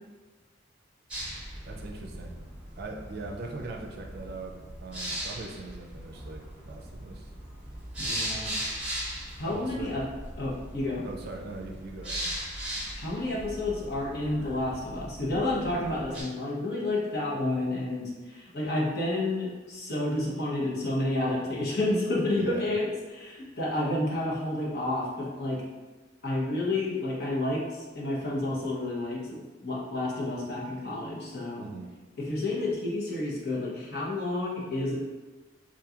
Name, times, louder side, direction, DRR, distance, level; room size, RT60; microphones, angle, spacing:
sound 1, 1.1-16.2, equal, 5° right, 1.3 m, -38 dB
voice 1, 1.6-2.4 2.8-7.3 8.0-8.4 9.4-10.0 11.0-12.3 22.4-22.7 31.6-31.9, right 3 dB, 55° right, 1 dB, 0.4 m, -41 dB
voice 2, 8.0-8.6 9.4-10.0 10.4-11.0 12.9-25.6 26.2-31.6 32.2-35.0, left 2 dB, 55° left, -5 dB, 0.9 m, -30 dB
3.8 x 2.8 x 2.4 m, 1.3 s
head